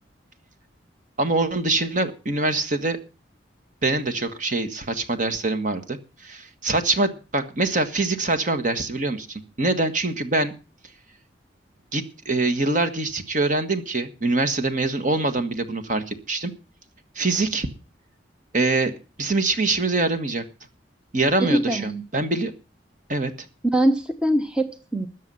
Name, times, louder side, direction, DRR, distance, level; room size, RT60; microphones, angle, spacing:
voice 1, 1.2-3.0 3.8-10.5 11.9-16.5 17.1-17.7 18.5-18.9 19.2-20.4 21.1-22.5 23.1-23.3, right 2 dB, 40° right, 9 dB, 1.4 m, -24 dB
voice 2, 21.4-22.0 23.7-25.1, right 1 dB, 5° right, 8 dB, 0.8 m, -22 dB
14.0 x 9.5 x 5.5 m, 0.33 s
head